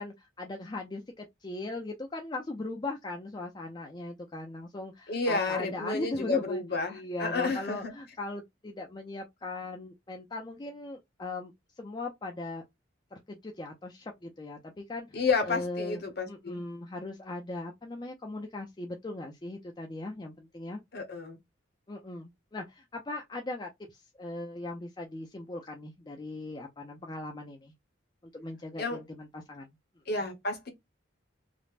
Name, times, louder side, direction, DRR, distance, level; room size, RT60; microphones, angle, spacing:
voice 1, 0.0-6.6 6.9-12.6 13.1-15.2 15.5-16.0 16.3-20.8 21.9-27.7 28.3-29.7, left 2 dB, 20° left, 0.4 m, -39 dB
voice 2, 5.1-7.9 15.1-16.6 20.9-21.4 28.8-29.0 30.1-30.7, left 4 dB, 50° left, 0.8 m, -31 dB
3.2 x 2.0 x 2.4 m
head